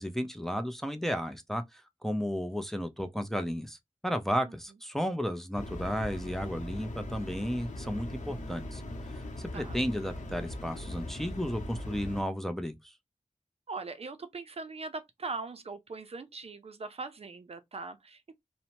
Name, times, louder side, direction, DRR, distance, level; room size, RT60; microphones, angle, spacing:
voice 1, 0.0-8.8 9.4-12.9, equal, 5° left, 0.5 m, -33 dB
sound 1, 5.5-12.2, left 1 dB, 80° left, 0.7 m, -40 dB
voice 2, 13.7-18.3, right 3 dB, 55° right, 0.4 m, -40 dB
2.7 x 2.1 x 2.9 m
wide cardioid pair, 55°, 12 cm